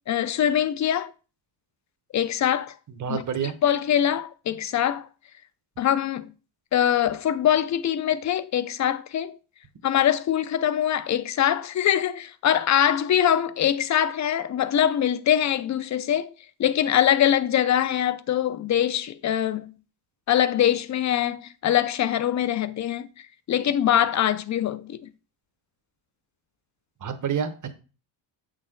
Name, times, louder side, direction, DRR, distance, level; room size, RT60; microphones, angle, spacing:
voice 1, 0.1-1.1 2.1-2.7 3.1-3.2 3.6-5.1 5.8-6.3 6.7-9.4 9.8-16.3 16.6-19.7 20.3-23.1 23.5-25.1, left 10 dB, 40° left, 0.5 m, -23 dB
voice 2, 2.9-3.5 27.0-27.7, right 7 dB, 40° right, 1.1 m, -28 dB
8.5 x 6.5 x 3.8 m
cardioid pair, 175°, 48 cm